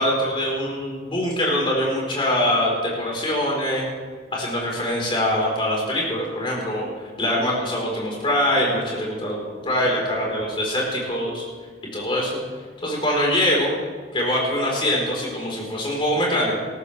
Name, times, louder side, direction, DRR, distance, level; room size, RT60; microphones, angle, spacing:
voice 1, 0.0-3.8 4.3-6.9 7.2-11.4 11.9-12.4 12.8-13.7 14.1-16.5, left 1 dB, 30° left, -3 dB, 4.3 m, -23 dB
19.0 x 14.0 x 3.4 m, 1.5 s
head